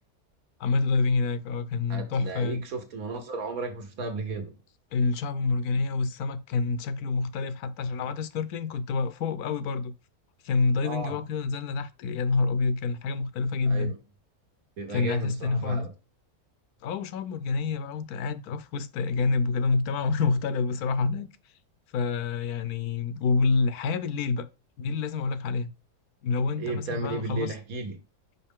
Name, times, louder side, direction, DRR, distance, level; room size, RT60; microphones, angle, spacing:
voice 1, 0.6-2.6 4.9-9.9 10.4-13.9 14.9-15.9 16.8-21.3 21.9-24.5 24.8-25.7 26.2-27.5, left 4 dB, 80° left, 1.2 m, -27 dB
voice 2, 1.9-4.6 10.8-11.2 13.7-14.0 14.8-15.9 26.6-28.0, right 3 dB, 70° right, 1.8 m, -34 dB
5.5 x 5.3 x 3.6 m
omnidirectional pair, 1.6 m